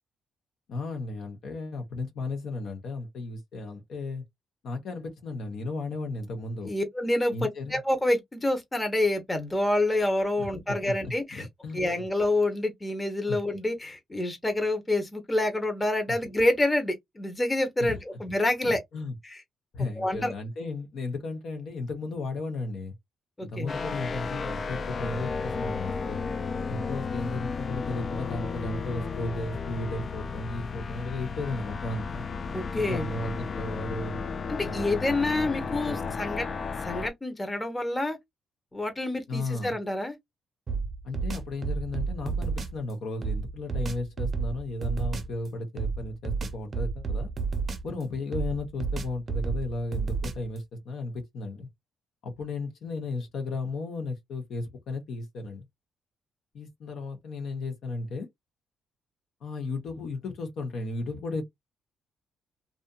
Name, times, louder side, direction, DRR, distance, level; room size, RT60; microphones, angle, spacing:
voice 1, 0.7-4.2 4.6-6.7 7.3-7.8 10.4-10.5 11.3-11.8 13.3-13.4 16.1-16.2 17.8-18.0 18.6-19.1 19.7-22.9 23.4-26.2 26.7-32.2 32.7-34.2 34.7-35.4 35.9-36.1 39.3-39.8 41.0-47.3 47.8-51.7 52.2-55.6 56.5-58.3 59.4-61.4, left 2 dB, 70° left, 0.9 m, -35 dB
voice 2, 6.6-11.5 11.7-18.8 19.2-19.4 20.0-20.3 23.4-23.7 32.5-33.1 34.5-36.5 36.8-38.2 38.7-40.2, left 1 dB, 15° left, 0.8 m, -27 dB
sound 1, 23.7-37.1, left 5 dB, 40° left, 0.4 m, -33 dB
sound 2, 40.7-42.8 43.2-45.4 45.8-48.0 48.3-50.6, right 4 dB, 40° right, 0.7 m, -31 dB
2.7 x 2.4 x 2.3 m
cardioid pair, 90°, 0 cm